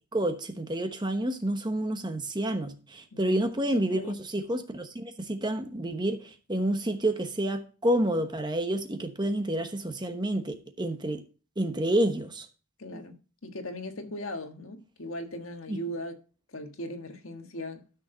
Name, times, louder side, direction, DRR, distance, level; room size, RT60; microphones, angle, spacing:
voice 1, 0.1-11.2 11.6-12.5 12.9-13.0 15.7-15.8, right 1 dB, 20° right, 1.0 m, -29 dB
voice 2, 3.1-3.4 3.9-4.2 12.8-13.2 13.4-16.2 16.5-17.8, equal, 75° left, 1.5 m, -38 dB
13.0 x 6.5 x 3.8 m
head